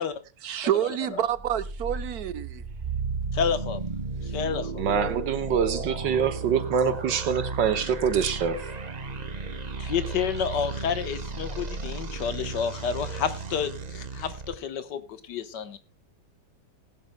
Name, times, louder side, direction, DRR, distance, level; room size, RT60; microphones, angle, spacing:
voice 1, 0.4-2.6, right 11 dB, 65° right, 1.2 m, -28 dB
sound 1, 1.3-14.5, right 4 dB, 30° right, 0.8 m, -34 dB
voice 2, 3.3-3.8 4.3-4.8 9.8-15.0 15.3-15.8, left 7 dB, 70° left, 1.7 m, -29 dB
voice 3, 4.8-8.6, right 7 dB, 80° right, 2.0 m, -25 dB
20.0 x 12.0 x 2.2 m
omnidirectional pair, 1.9 m